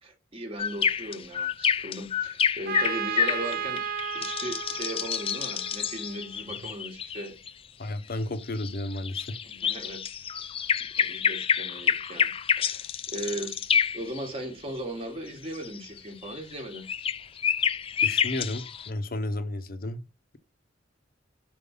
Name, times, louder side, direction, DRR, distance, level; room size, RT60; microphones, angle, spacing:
voice 1, 0.0-3.9 4.1-7.4 9.4-10.0 10.3-10.5 11.0-12.9 13.1-13.6 13.9-16.9, right 1 dB, 30° right, 1.1 m, -37 dB
sound 1, 0.6-7.5 8.4-14.3 15.3-18.9, left 7 dB, 30° left, 0.3 m, -28 dB
Trumpet, 2.7-6.4, right 8 dB, 50° right, 0.4 m, -34 dB
voice 2, 7.8-9.4 18.0-20.0, left 1 dB, 50° left, 0.7 m, -33 dB
5.3 x 4.5 x 5.5 m
head